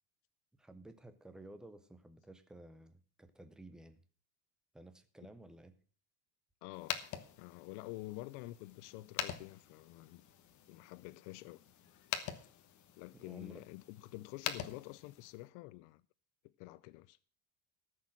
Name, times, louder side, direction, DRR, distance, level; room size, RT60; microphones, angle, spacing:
voice 1, 0.6-4.0 4.7-5.7 13.1-13.6, right 1 dB, ahead, 0.5 m, -54 dB
voice 2, 6.6-7.0 7.4-10.2 10.7-11.6 13.0-16.0 16.4-17.2, left 19 dB, 65° left, 0.6 m, -48 dB
sound 1, 6.7-15.5, left 10 dB, 35° left, 1.2 m, -45 dB
14.0 x 6.6 x 7.4 m
cardioid pair, 170°, 48 cm